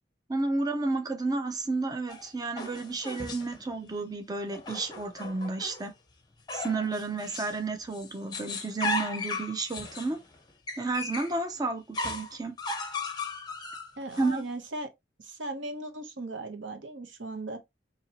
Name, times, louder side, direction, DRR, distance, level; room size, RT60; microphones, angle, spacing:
voice 1, 0.3-5.9 6.5-10.2 10.8-12.5 14.2-14.4, right 3 dB, 20° right, 0.5 m, -31 dB
sound 1, 2.1-3.6 4.5-5.9 6.5-7.6 7.9-11.4 11.9-14.3, left 2 dB, 25° left, 0.7 m, -36 dB
voice 2, 14.0-14.9 15.2-17.6, right 2 dB, 85° right, 0.8 m, -37 dB
4.2 x 2.9 x 2.8 m
head